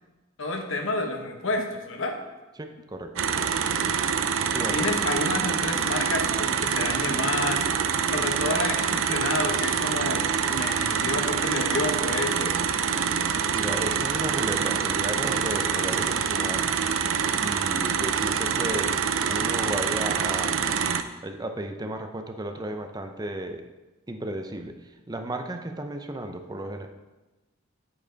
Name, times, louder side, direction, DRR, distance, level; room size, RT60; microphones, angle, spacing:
voice 1, 0.4-2.2 4.7-12.6, left 2 dB, 70° left, 3 dB, 1.3 m, -29 dB
voice 2, 2.6-3.3 4.5-4.9 13.5-16.7 17.4-20.7 21.2-23.6 24.1-26.9, right 1 dB, 20° right, 5 dB, 0.6 m, -34 dB
sound 1, 3.2-21.0, right 7 dB, 80° right, 0.6 m, -26 dB
8.9 x 8.6 x 4.0 m, 1.1 s
head